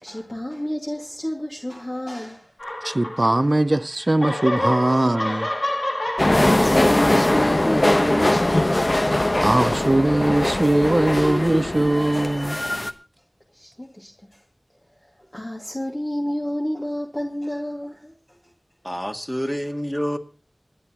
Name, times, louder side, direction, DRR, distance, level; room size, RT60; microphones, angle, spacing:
voice 1, 0.0-2.5 2.8-3.0 4.8-5.1 6.0-9.1 13.5-14.4 15.0-18.5, equal, 35° left, 2.4 m, -30 dB
sound 1, 2.6-3.7 4.0-9.0, left 1 dB, 90° left, 2.7 m, -29 dB
voice 2, 2.8-5.5 9.4-12.6, right 1 dB, 55° right, 0.7 m, -20 dB
sound 2, 6.2-12.9, left 1 dB, 55° left, 1.1 m, -21 dB
voice 3, 18.8-20.2, equal, 10° left, 2.1 m, -27 dB
28.5 x 10.0 x 3.0 m
wide cardioid pair, 40°, 0 cm